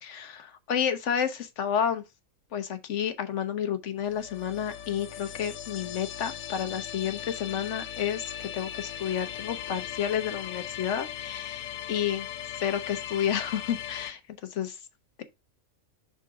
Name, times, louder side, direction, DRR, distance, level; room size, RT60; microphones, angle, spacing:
voice 1, 0.0-2.0 2.5-12.3 12.5-14.2 14.5-14.8, left 8 dB, 65° left, 1.1 m, -30 dB
sound 1, 4.0-14.1, left 10 dB, 85° left, 1.1 m, -38 dB
6.5 x 3.8 x 4.6 m
omnidirectional pair, 1.4 m